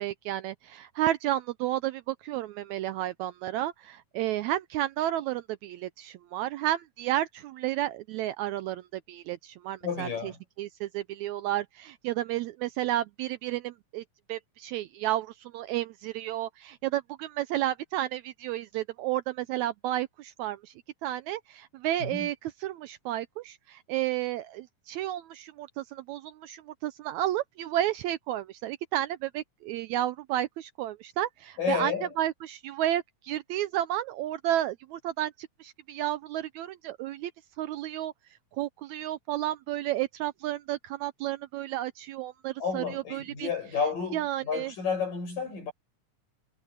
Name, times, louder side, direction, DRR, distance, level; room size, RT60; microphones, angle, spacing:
voice 1, 0.0-10.3 10.6-14.0 14.3-20.7 21.0-37.3 37.6-38.1 38.6-43.5 44.1-44.7, right 13 dB, 80° right, 1.7 m, -32 dB
voice 2, 9.8-10.4 22.0-22.3 31.6-32.1 42.6-45.7, left 6 dB, 90° left, 9.4 m, -31 dB
omnidirectional pair, 3.8 m